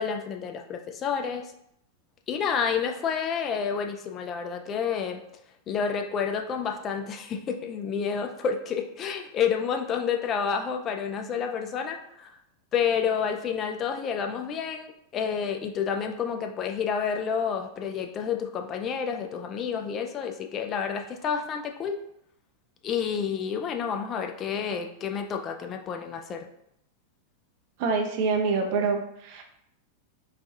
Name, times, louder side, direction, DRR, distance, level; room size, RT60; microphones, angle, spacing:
voice 1, 0.0-1.5 2.3-5.2 5.7-12.3 12.7-22.0 22.8-26.5, left 7 dB, 30° left, 4 dB, 0.3 m, -29 dB
voice 2, 27.8-29.4, right 4 dB, 45° right, 3 dB, 0.5 m, -26 dB
4.0 x 2.2 x 2.6 m, 0.76 s
figure-of-eight pair, 90°, 0 cm